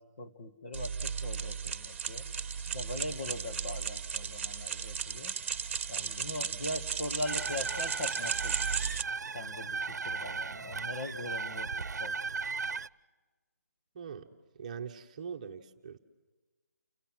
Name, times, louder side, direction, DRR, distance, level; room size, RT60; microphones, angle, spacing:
voice 1, 0.0-2.3 2.7-5.4 5.9-8.6 9.3-12.2, left 1 dB, 40° left, 6 dB, 2.1 m, -40 dB
sound 1, 0.7-9.0, right 6 dB, 40° right, 1.2 m, -35 dB
sound 2, 7.2-12.9, right 4 dB, 75° right, 0.9 m, -36 dB
voice 2, 13.9-14.3 14.6-16.0, right 7 dB, 25° right, 4 dB, 1.3 m, -42 dB
29.5 x 24.5 x 7.8 m, 1.3 s
hypercardioid pair, 170°, 9 cm